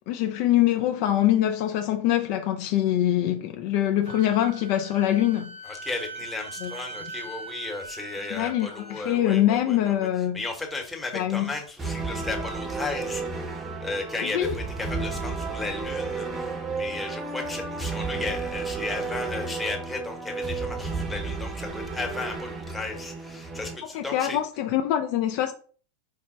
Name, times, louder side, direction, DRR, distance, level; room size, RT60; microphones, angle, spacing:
voice 1, 0.1-5.5 6.6-6.7 8.3-10.4 11.1-11.5 14.2-14.5 23.9-25.5, left 12 dB, 45° left, 0.4 m, -24 dB
Wind instrument woodwind instrument, 4.0-9.2, right 2 dB, 75° right, 0.6 m, -41 dB
voice 2, 5.6-10.1 10.3-24.4, left 3 dB, 5° left, 1.0 m, -35 dB
sound 1, 11.8-23.8, right 3 dB, 20° right, 0.7 m, -32 dB
4.6 x 2.1 x 4.3 m
figure-of-eight pair, 90°, 0 cm